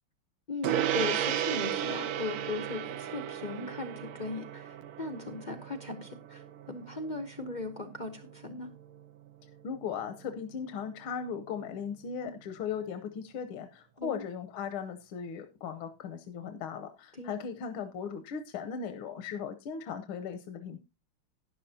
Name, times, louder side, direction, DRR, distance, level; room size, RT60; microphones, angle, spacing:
voice 1, 0.5-8.7 14.0-14.2 17.1-17.4, left 3 dB, 55° left, 7 dB, 0.4 m, -38 dB
Gong, 0.6-10.3, right 10 dB, 85° right, 1.7 m, -35 dB
voice 2, 9.6-20.8, left 7 dB, 80° left, 8 dB, 1.7 m, -38 dB
12.0 x 10.5 x 2.7 m, 0.25 s
omnidirectional pair, 2.3 m